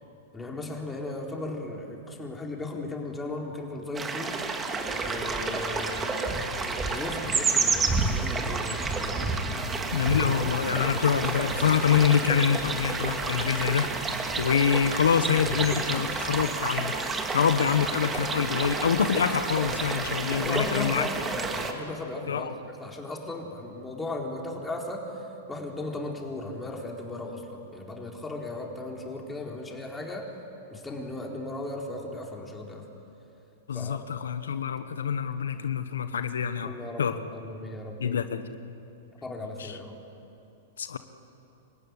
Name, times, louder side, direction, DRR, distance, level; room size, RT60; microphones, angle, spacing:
voice 1, 0.3-4.5 4.8-6.3 6.7-9.3 20.4-25.0 25.5-30.3 30.7-32.8 33.7-34.0 36.6-38.2 39.2-39.9, left 2 dB, 10° left, 0 dB, 4.1 m, -36 dB
sound 1, 3.9-21.7, right 3 dB, 15° right, 2.4 m, -30 dB
voice 2, 9.9-21.1 22.3-22.5 33.7-37.2 38.0-38.6 39.6-39.8 40.8-41.0, left 7 dB, 85° left, 11 dB, 1.0 m, -26 dB
27.0 x 15.5 x 9.6 m, 2.8 s
hypercardioid pair, 115°, 0 cm